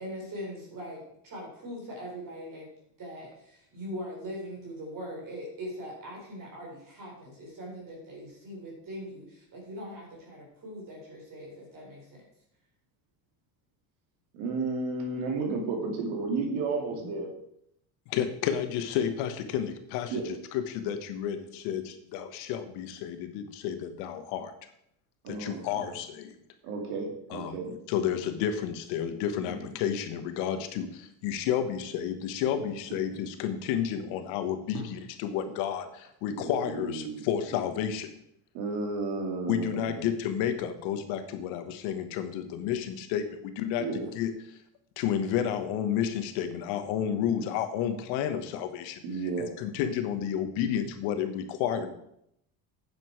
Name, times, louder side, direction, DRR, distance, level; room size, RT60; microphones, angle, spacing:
voice 1, 0.0-2.7 3.0-12.2, equal, 45° right, -2 dB, 4.3 m, -41 dB
voice 2, 14.3-17.3 20.1-20.2 25.2-25.9 26.6-27.7 29.4-29.7 36.3-37.3 38.5-40.1 43.8-44.1 47.3-47.4 49.0-49.5 51.7-51.9, right 3 dB, 80° right, 2 dB, 2.5 m, -33 dB
voice 3, 18.1-24.5 25.3-26.3 27.3-38.1 39.5-44.6 45.0-49.0 49.4-51.9, left 9 dB, 80° left, 9 dB, 1.3 m, -31 dB
9.5 x 7.3 x 4.6 m, 0.75 s
supercardioid pair, 105°, 46 cm